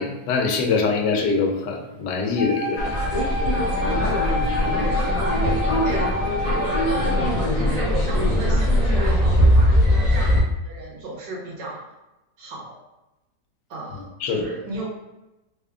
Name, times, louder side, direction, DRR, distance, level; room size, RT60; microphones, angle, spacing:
voice 1, 0.0-2.9 14.2-14.4, left 4 dB, 75° left, 3 dB, 1.1 m, -23 dB
Wind instrument woodwind instrument, 2.4-7.4, left 2 dB, 55° left, 1.4 m, -29 dB
sound 1, 2.8-10.4, equal, 30° left, 0.5 m, -20 dB
voice 2, 4.6-11.8 12.4-12.8 13.7-14.9, right 2 dB, 85° right, -3 dB, 1.5 m, -35 dB
3.5 x 2.2 x 3.5 m, 0.99 s
omnidirectional pair, 1.9 m